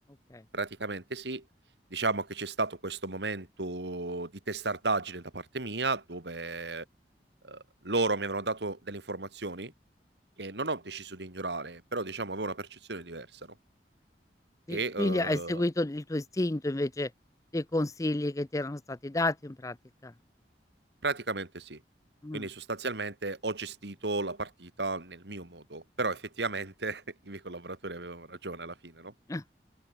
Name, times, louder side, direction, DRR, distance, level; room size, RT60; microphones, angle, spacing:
voice 1, 0.5-1.4 1.9-6.8 7.4-9.7 10.4-13.4 14.7-15.6 21.0-21.8 22.3-29.1, right 3 dB, 75° right, 2.6 m, -34 dB
voice 2, 14.7-17.1 17.5-19.8 20.0-20.1 22.2-22.5 29.3-29.4, left 2 dB, 20° left, 0.6 m, -30 dB
open air
head